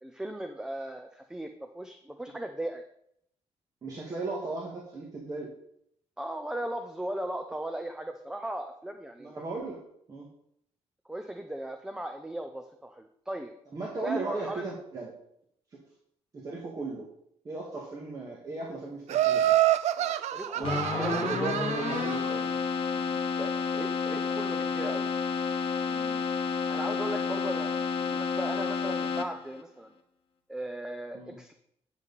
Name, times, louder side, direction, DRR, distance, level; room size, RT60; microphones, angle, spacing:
voice 1, 0.0-2.8 6.2-9.3 11.1-13.5 14.0-14.6 20.0-21.4 23.4-25.1 25.7-26.3 26.7-29.9 30.5-31.5, right 1 dB, 5° right, 6 dB, 0.6 m, -37 dB
voice 2, 3.8-5.5 9.2-9.8 10.1-10.3 13.7-15.1 16.3-17.1 17.4-19.5 20.5-22.6 31.1-31.4, right 3 dB, 30° right, -4 dB, 1.8 m, -36 dB
Laughter, 19.1-22.3, right 13 dB, 80° right, 0.5 m, -27 dB
Keyboard (musical), 20.6-29.6, left 5 dB, 50° left, 1.3 m, -30 dB
9.5 x 7.3 x 4.1 m, 0.71 s
cardioid pair, 165°, 12 cm